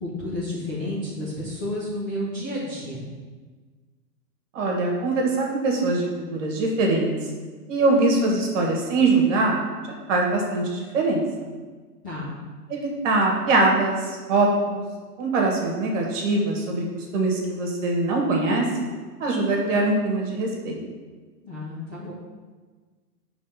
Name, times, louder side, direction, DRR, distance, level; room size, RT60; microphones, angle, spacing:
voice 1, 0.0-3.0 12.0-12.3 21.4-22.1, left 1 dB, 15° left, -10 dB, 0.4 m, -31 dB
voice 2, 4.5-7.1 7.7-9.6 10.1-11.2 12.7-14.8 15.2-18.6 19.2-20.8, right 2 dB, 50° right, 0 dB, 1.4 m, -22 dB
5.1 x 3.4 x 5.5 m, 1.4 s
hypercardioid pair, 140°, 48 cm